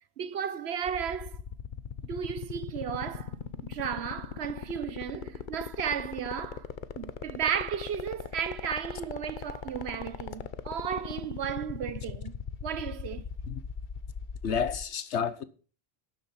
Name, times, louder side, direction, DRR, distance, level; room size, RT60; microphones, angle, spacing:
voice 1, 0.2-1.4 2.0-6.7 7.0-12.3 12.6-13.3, right 8 dB, 70° right, 1.1 m, -34 dB
sound 1, 0.8-14.8, left 7 dB, 50° left, 0.8 m, -38 dB
voice 2, 14.4-15.4, left 6 dB, 80° left, 1.3 m, -30 dB
12.0 x 7.1 x 5.8 m
omnidirectional pair, 1.2 m